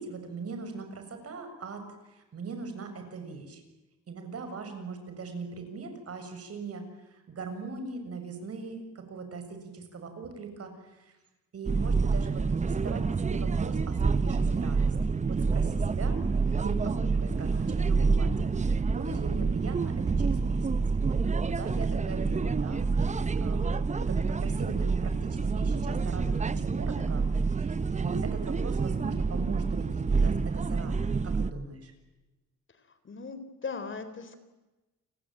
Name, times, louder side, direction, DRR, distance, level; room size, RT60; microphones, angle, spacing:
voice 1, 0.0-3.6 4.1-11.2 11.5-16.2 16.6-20.7 21.1-27.2 27.5-31.9, right 4 dB, 50° right, 7 dB, 7.2 m, -40 dB
sound 1, 11.7-31.5, right 4 dB, 25° right, 0.9 m, -28 dB
sound 2, 16.3-27.6, right 4 dB, 85° right, 7.7 m, -46 dB
voice 2, 23.6-23.9 33.0-34.4, left 4 dB, 40° left, 11 dB, 4.1 m, -39 dB
30.0 x 21.0 x 9.1 m, 1.1 s
cardioid pair, 90°, 30 cm